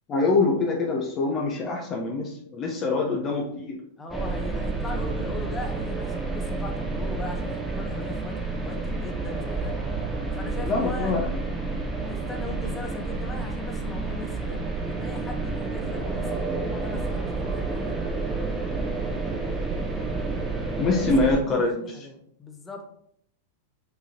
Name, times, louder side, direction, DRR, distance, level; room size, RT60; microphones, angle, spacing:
voice 1, 0.1-3.8 10.6-11.2 20.8-22.0, left 3 dB, 30° left, -1 dB, 1.0 m, -24 dB
voice 2, 4.0-9.7 10.3-11.1 12.0-14.6 14.9-18.2 19.3-19.8 21.0-22.9, left 2 dB, 15° left, 2 dB, 1.1 m, -39 dB
sound 1, 4.1-21.4, right 3 dB, 10° right, 1.1 m, -30 dB
5.9 x 5.5 x 2.9 m, 0.68 s
figure-of-eight pair, 95°, 0 cm